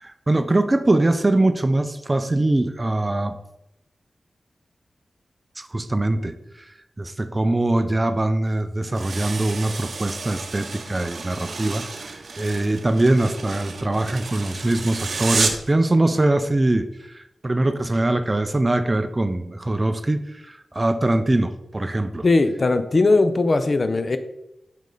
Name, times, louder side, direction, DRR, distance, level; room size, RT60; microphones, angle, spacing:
voice 1, 0.0-3.4 5.6-6.3 7.0-22.3, right 2 dB, 25° right, 11 dB, 0.4 m, -22 dB
sound 1, 8.9-15.7, right 4 dB, 70° right, 0.6 m, -31 dB
voice 2, 22.2-24.2, left 3 dB, 50° left, 10 dB, 0.5 m, -19 dB
5.2 x 5.2 x 3.9 m, 0.87 s
wide cardioid pair, 75°, 0 cm